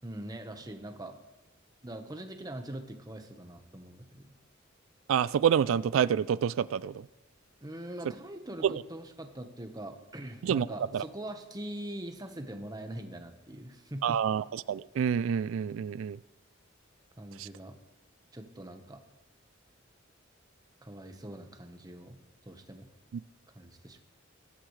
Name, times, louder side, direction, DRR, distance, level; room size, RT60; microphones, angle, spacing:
voice 1, 0.0-1.2 1.8-4.4 7.6-14.2 17.2-17.8 18.3-19.0 20.8-22.2 22.5-22.9 23.5-24.0, right 1 dB, 20° right, 6 dB, 1.2 m, -42 dB
voice 2, 5.1-7.1 8.6-8.7 10.4-10.7 10.9-11.0 14.0-16.2 17.4-17.5, right 8 dB, 85° right, 18 dB, 0.3 m, -27 dB
21.5 x 11.5 x 3.2 m, 1.1 s
head